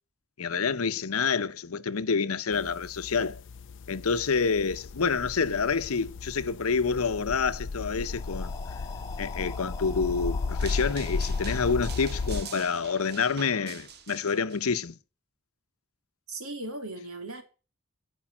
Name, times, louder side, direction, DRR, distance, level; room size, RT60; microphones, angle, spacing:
voice 1, 0.4-3.4 3.9-8.5 9.2-14.9, left 5 dB, 85° left, 0.8 m, -28 dB
sound 1, 2.5-12.4, left 4 dB, 60° left, 0.5 m, -35 dB
sound 2, 8.0-14.0, left 3 dB, 15° left, 1.8 m, -45 dB
sound 3, 10.6-14.6, right 7 dB, 50° right, 1.2 m, -45 dB
voice 2, 16.3-17.4, right 2 dB, 80° right, 2.8 m, -37 dB
13.5 x 5.4 x 8.9 m
head